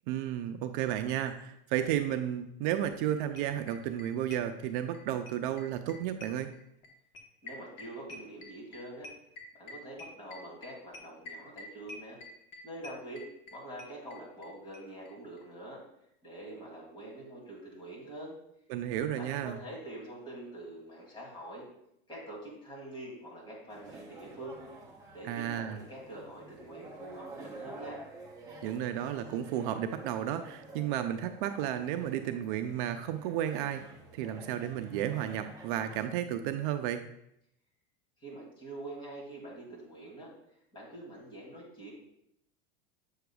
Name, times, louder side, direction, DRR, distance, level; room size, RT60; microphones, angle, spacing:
voice 1, 0.1-6.5 18.7-19.6 25.2-25.8 28.6-33.8 34.1-37.0, right 11 dB, 60° right, 8 dB, 0.5 m, -33 dB
sound 1, 2.7-2.8 3.0-3.1 3.4-5.0 5.3-14.5 14.7-14.8 15.1-15.2 15.4-15.5, left 2 dB, 40° left, 1.1 m, -47 dB
voice 2, 7.4-9.1 9.5-12.2 12.6-13.3 13.5-15.8 16.2-18.3 19.2-21.7 22.1-24.6 25.1-28.0 38.2-40.3 40.7-41.9, right 1 dB, 15° left, -4 dB, 2.4 m, -45 dB
sound 2, 23.7-36.0, right 2 dB, 10° right, 0.8 m, -50 dB
7.7 x 6.5 x 2.3 m, 0.76 s
supercardioid pair, 150°, 29 cm